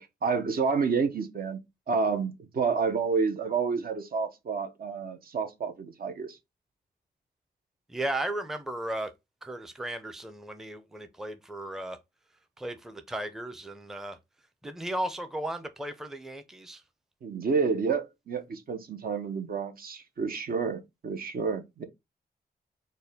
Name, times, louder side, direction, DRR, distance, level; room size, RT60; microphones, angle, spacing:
voice 1, 0.0-1.6 1.9-6.4 17.2-21.8, right 5 dB, 60° right, 0.7 m, -29 dB
voice 2, 7.9-9.1 9.4-12.0 12.6-14.2 14.6-16.8, right 1 dB, ahead, 0.5 m, -35 dB
4.1 x 2.2 x 3.4 m
cardioid pair, 90°, 17 cm